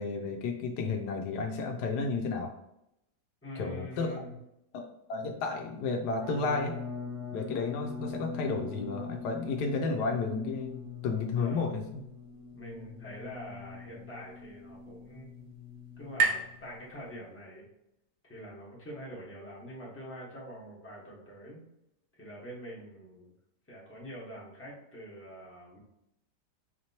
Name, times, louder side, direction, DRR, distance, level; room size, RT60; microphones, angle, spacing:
voice 1, 0.0-2.5 3.6-4.2 4.7-4.8 5.1-6.8 7.3-11.8, left 4 dB, 80° left, 4 dB, 1.1 m, -32 dB
voice 2, 3.4-4.4 11.4-11.8 12.5-15.5 16.0-17.7 18.2-21.6 22.1-23.3 23.7-25.8, equal, 10° left, -5 dB, 1.1 m, -45 dB
sound 1, 6.2-17.1, left 5 dB, 45° left, 1.4 m, -43 dB
sound 2, 13.8-17.6, right 4 dB, 90° right, 0.4 m, -36 dB
5.0 x 2.9 x 2.8 m, 0.83 s
omnidirectional pair, 1.8 m